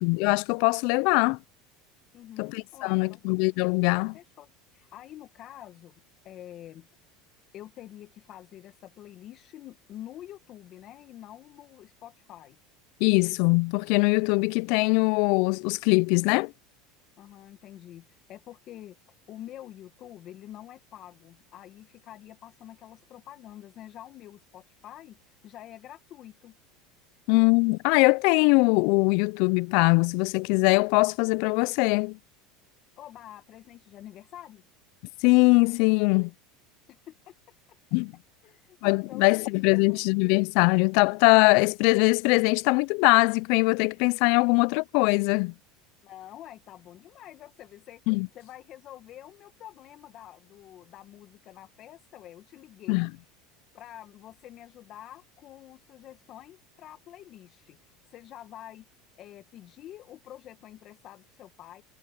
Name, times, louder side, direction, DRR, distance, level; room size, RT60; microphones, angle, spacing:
voice 1, 0.0-1.4 2.4-4.1 13.0-16.5 27.3-32.2 35.2-36.3 37.9-38.1 38.8-45.5 48.1-48.3 52.9-53.1, left 30 dB, 65° left, 0.3 m, -22 dB
voice 2, 2.1-3.2 4.1-5.9 6.2-7.1 7.5-12.6 17.2-19.0 19.3-26.5 33.0-34.6 36.9-37.3 37.7-37.8 38.4-40.0 46.0-48.0 48.3-53.0 53.7-58.9 59.1-61.8, left 12 dB, 50° left, 1.8 m, -47 dB
supercardioid pair, 105°, 0 cm